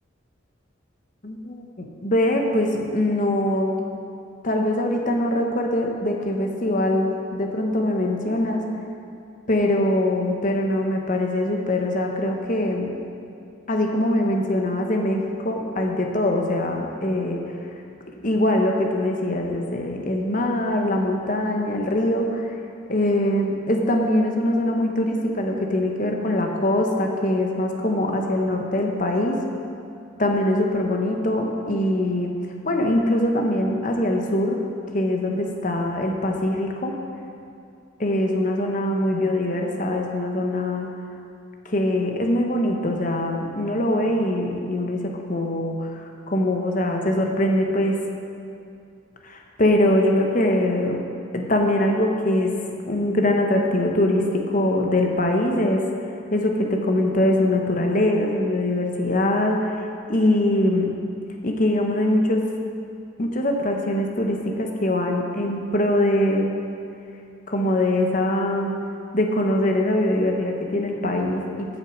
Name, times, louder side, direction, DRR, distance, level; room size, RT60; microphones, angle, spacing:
voice 1, 1.2-3.8 4.4-8.7 9.5-12.9 13.7-17.5 18.2-22.5 22.9-29.4 30.2-32.4 32.6-34.6 34.9-37.0 38.0-40.9 41.6-48.0 49.2-51.0 51.3-52.5 52.9-55.8 56.3-59.7 60.1-60.9 61.4-62.5 63.2-66.6 67.5-68.7 69.1-71.8, left 1 dB, 40° left, 2 dB, 1.1 m, -22 dB
9.5 x 6.6 x 7.4 m, 2.5 s
head